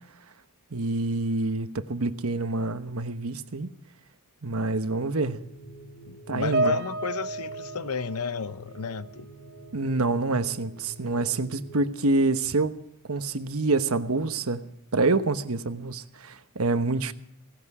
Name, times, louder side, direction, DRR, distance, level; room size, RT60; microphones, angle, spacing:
voice 1, 0.7-3.7 4.4-5.4 6.3-6.8 9.7-12.8 13.1-14.6 14.9-17.1, right 3 dB, 75° right, 1.1 m, -26 dB
Loopable hum, 5.0-11.8, right 2 dB, 40° left, 3.8 m, -47 dB
voice 2, 6.1-9.3, left 5 dB, 90° left, 0.8 m, -33 dB
Piano, 6.5-9.2 9.4-9.8 10.5-10.7, right 2 dB, 45° right, 1.7 m, -31 dB
17.5 x 16.5 x 4.9 m
head